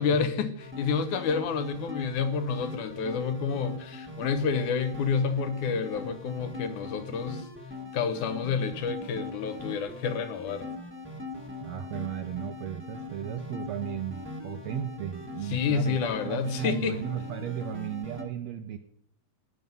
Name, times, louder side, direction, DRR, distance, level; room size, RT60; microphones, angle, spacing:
voice 1, 0.0-7.5 7.9-10.7 15.5-17.0, left 5 dB, 70° left, 9 dB, 2.3 m, -29 dB
sound 1, 0.6-18.2, left 3 dB, 5° right, 0.9 m, -41 dB
voice 2, 11.6-18.8, right 10 dB, 75° right, 7 dB, 1.6 m, -35 dB
16.5 x 10.5 x 5.5 m, 0.71 s
omnidirectional pair, 3.8 m